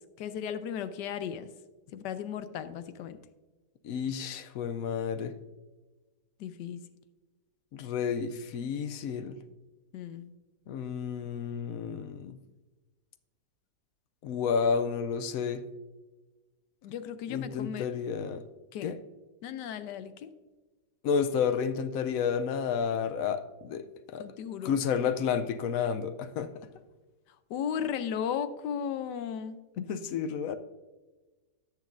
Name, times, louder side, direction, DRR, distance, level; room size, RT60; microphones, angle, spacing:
voice 1, 0.2-1.5 1.9-3.2 6.4-6.8 9.9-10.3 16.8-17.9 18.7-18.9 19.4-20.3 24.2-24.8 27.5-29.6, left 8 dB, 85° left, 1.3 m, -35 dB
voice 2, 3.8-5.3 7.7-9.4 10.7-12.4 14.2-15.6 17.3-18.4 18.8-19.0 21.0-23.8 24.1-24.3 24.6-26.5 29.8-30.6, left 6 dB, 70° left, 0.9 m, -31 dB
17.5 x 6.2 x 2.5 m
omnidirectional pair, 1.8 m